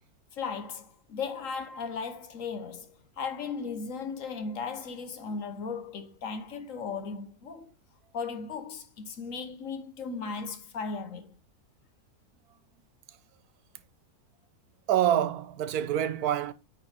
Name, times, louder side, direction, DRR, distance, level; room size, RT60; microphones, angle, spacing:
voice 1, 0.3-7.7 8.1-11.4, left 5 dB, 60° left, 1.3 m, -36 dB
voice 2, 14.9-16.5, right 10 dB, 80° right, 1.2 m, -26 dB
8.7 x 4.1 x 4.4 m
omnidirectional pair, 1.6 m